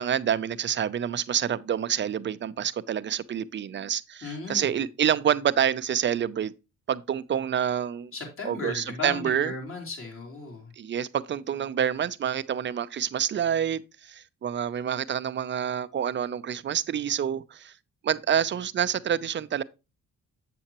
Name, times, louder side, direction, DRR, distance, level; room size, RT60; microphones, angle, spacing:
voice 1, 0.0-6.5 6.9-8.1 8.4-9.5 10.8-17.7 18.0-19.6, right 9 dB, 40° right, 0.5 m, -27 dB
voice 2, 4.2-4.8 8.1-10.7, left 3 dB, 45° left, 3.2 m, -36 dB
7.7 x 7.3 x 2.9 m
cardioid pair, 90°, 30 cm